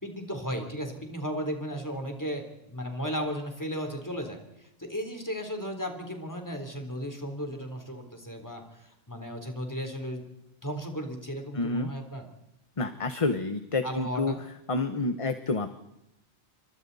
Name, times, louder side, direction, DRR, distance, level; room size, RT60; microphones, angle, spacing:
voice 1, 0.0-10.2 10.6-12.3 13.8-14.4, equal, 15° left, 4 dB, 3.5 m, -35 dB
voice 2, 11.5-11.9 12.8-14.3 14.7-15.8, left 3 dB, 35° left, 9 dB, 1.0 m, -29 dB
28.5 x 24.5 x 4.1 m, 0.88 s
omnidirectional pair, 1.1 m